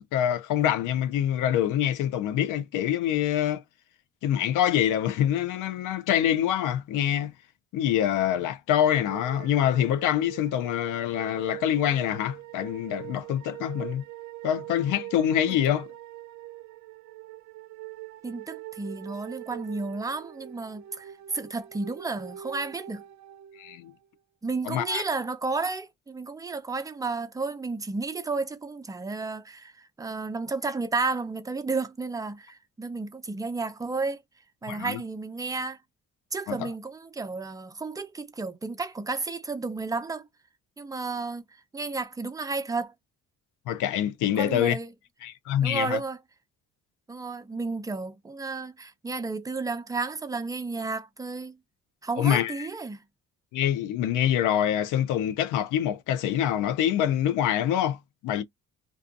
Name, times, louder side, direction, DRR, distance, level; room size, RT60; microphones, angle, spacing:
voice 1, 0.1-3.6 4.2-7.3 7.7-14.0 14.4-15.9 23.6-23.9 24.6-25.0 34.7-35.0 36.5-36.7 43.7-44.8 45.2-46.0 52.2-52.7 53.5-58.4, left 10 dB, 90° left, 0.5 m, -25 dB
sound 1, 8.9-24.0, right 15 dB, 65° right, 0.5 m, -43 dB
voice 2, 18.2-23.0 24.4-34.2 34.6-35.8 36.3-40.3 40.8-41.4 41.7-42.9 44.4-44.9 45.6-46.2 47.1-51.6 52.0-53.0, right 3 dB, 10° right, 0.5 m, -32 dB
2.6 x 2.3 x 2.5 m
cardioid pair, 90°, 30 cm